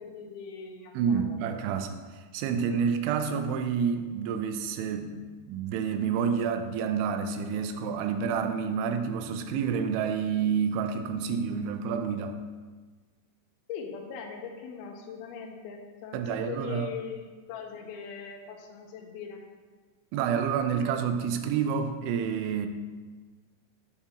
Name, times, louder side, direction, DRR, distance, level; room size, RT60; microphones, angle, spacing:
voice 1, 0.0-1.6 13.7-19.4, left 6 dB, 90° left, 2 dB, 2.2 m, -41 dB
voice 2, 1.0-12.4 16.1-16.9 20.1-22.7, right 7 dB, 85° right, 7 dB, 3.0 m, -29 dB
6.9 x 6.7 x 2.9 m, 1.4 s
omnidirectional pair, 5.4 m